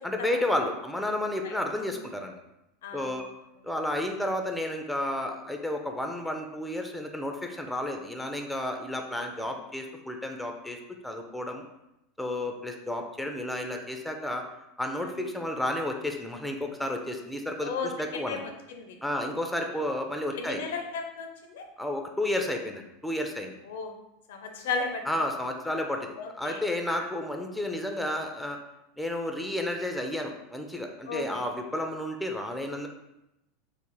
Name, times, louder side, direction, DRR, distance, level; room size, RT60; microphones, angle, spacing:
voice 1, 0.0-2.3 2.9-3.3 3.6-10.8 11.0-11.7 12.2-14.4 14.8-18.4 19.0-20.6 21.8-23.5 25.1-28.6 29.0-32.9, left 1 dB, 5° left, 3 dB, 0.4 m, -32 dB
voice 2, 2.8-3.2 9.2-9.5 15.0-15.3 17.6-19.0 20.3-21.6 23.6-23.9 24.3-25.0 26.2-26.7 27.0-27.1 31.1-31.5, left 4 dB, 65° left, 4 dB, 0.4 m, -35 dB
3.9 x 2.0 x 3.1 m, 0.88 s
figure-of-eight pair, 80°, 0 cm